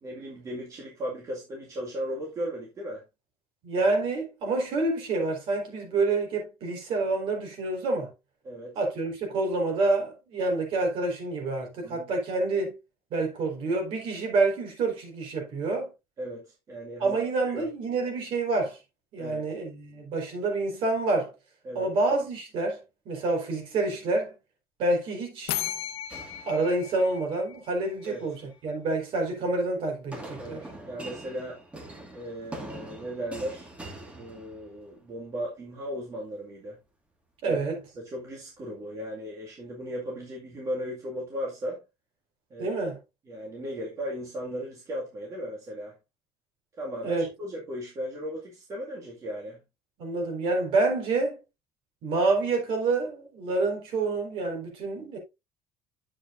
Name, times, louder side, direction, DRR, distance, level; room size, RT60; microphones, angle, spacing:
voice 1, 0.0-3.0 8.4-8.8 11.8-12.1 16.2-17.2 17.4-17.7 19.2-19.5 21.6-21.9 28.1-28.3 30.4-31.6 32.1-33.7 34.1-36.8 37.4-37.6 38.0-41.8 42.5-42.8 43.3-45.9 46.8-49.6, equal, 30° right, 2.1 m, -36 dB
voice 2, 3.6-8.1 8.8-12.7 13.1-15.9 17.0-18.8 19.1-21.3 21.7-22.8 23.1-24.4 24.8-25.6 26.5-30.6 37.4-37.8 42.6-43.0 47.0-47.3 50.0-51.4 52.0-55.2, right 3 dB, 50° right, 4.2 m, -27 dB
sound 1, 25.5-28.2, left 13 dB, 60° left, 0.9 m, -36 dB
sound 2, 26.1-27.2 27.9-28.3 30.1-34.9, right 1 dB, 10° right, 1.8 m, -43 dB
10.0 x 7.6 x 2.5 m
cardioid pair, 170°, 11 cm